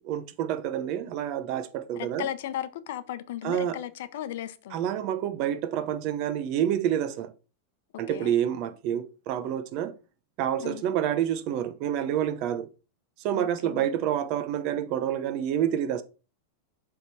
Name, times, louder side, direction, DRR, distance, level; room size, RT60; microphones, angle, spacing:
voice 1, 0.0-2.3 3.4-3.8 4.7-7.3 8.0-9.9 10.4-12.7 13.2-16.0, right 10 dB, 45° right, 0.8 m, -28 dB
voice 2, 2.0-4.8 8.1-8.3 10.6-10.8 13.3-13.9, left 11 dB, 70° left, 0.7 m, -36 dB
7.1 x 3.6 x 4.6 m
supercardioid pair, 140°, 0 cm